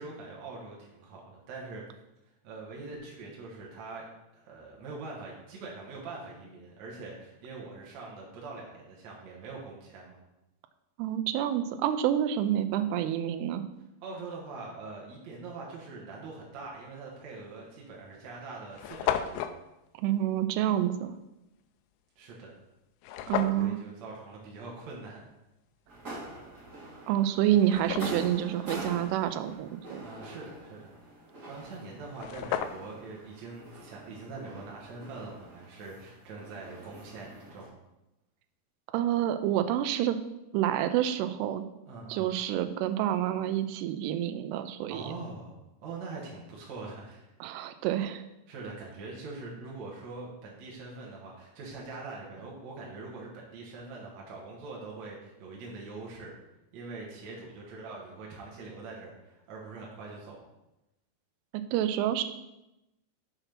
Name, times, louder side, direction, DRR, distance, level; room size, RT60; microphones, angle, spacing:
voice 1, 0.0-1.8 2.4-4.1 4.3-10.2 14.0-19.4 22.2-22.5 23.1-23.2 23.6-25.2 26.3-26.5 30.0-37.7 41.9-42.3 44.9-47.3 48.5-56.3 56.7-60.4, right 3 dB, 60° right, -3 dB, 1.9 m, -43 dB
voice 2, 11.0-13.6 19.9-21.2 23.3-23.8 27.1-30.0 38.9-40.2 40.5-41.6 42.1-45.1 47.4-48.2 61.5-62.2, right 11 dB, 80° right, 10 dB, 2.5 m, -28 dB
sound 1, 17.2-17.4 18.1-18.2 18.4-18.5 18.7-19.6 23.0-23.7 26.6-26.7 27.2-28.4 31.7-31.8 32.1-33.1, left 10 dB, 85° left, 2.3 m, -33 dB
sound 2, 25.9-37.7, right 1 dB, 30° right, 2.0 m, -45 dB
6.8 x 5.7 x 5.8 m, 0.93 s
omnidirectional pair, 4.9 m